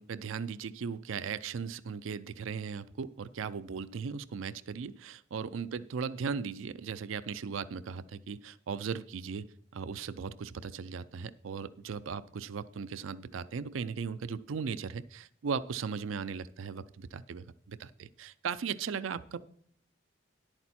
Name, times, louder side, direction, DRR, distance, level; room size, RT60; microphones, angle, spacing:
voice 1, 0.0-19.4, right 6 dB, 80° right, 14 dB, 0.4 m, -37 dB
11.0 x 8.8 x 4.2 m, 0.64 s
head